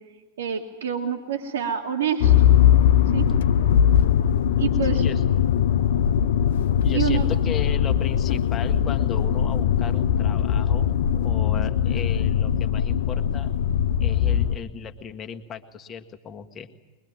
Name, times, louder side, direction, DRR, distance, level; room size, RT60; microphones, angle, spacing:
voice 1, 0.4-2.3 3.1-3.3 4.6-5.1 6.9-7.3, right 7 dB, 65° right, 3 dB, 1.7 m, -27 dB
Motor vehicle (road), 2.2-14.6, left 9 dB, 60° left, 0.7 m, -20 dB
voice 2, 4.9-5.4 6.8-13.5 14.0-16.7, left 7 dB, 25° left, 5 dB, 1.6 m, -36 dB
23.0 x 22.0 x 9.4 m, 1.2 s
figure-of-eight pair, 90°, 0 cm